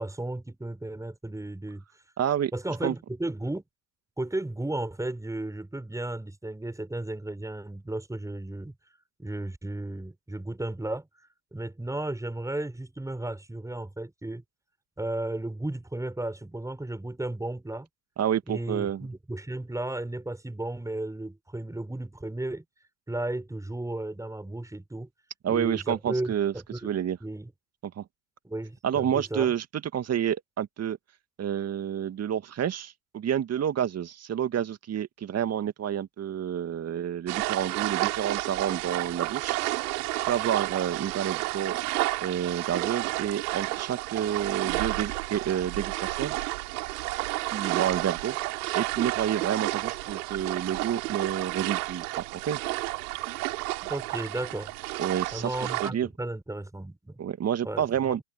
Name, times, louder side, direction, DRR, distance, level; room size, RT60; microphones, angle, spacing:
voice 1, 0.0-1.8 2.5-3.6 4.2-8.7 9.2-11.1 11.5-14.4 15.0-17.9 18.5-22.6 23.1-25.1 25.5-26.9 27.2-27.5 28.4-29.5 53.8-54.7 55.3-57.2 57.6-58.2, right 2 dB, 5° right, 6.6 m, -34 dB
voice 2, 2.2-2.5 2.8-2.9 18.2-19.1 25.4-26.5 26.8-27.2 27.8-28.0 28.8-29.6 29.9-31.0 31.4-39.6 40.3-41.8 42.2-46.3 47.5-48.4 48.7-52.0 52.3-52.6 55.0-56.1 57.2-58.2, right 9 dB, 30° right, 2.4 m, -29 dB
sound 1, 37.3-55.9, right 20 dB, 65° right, 6.6 m, -31 dB
hypercardioid pair, 80°, 49 cm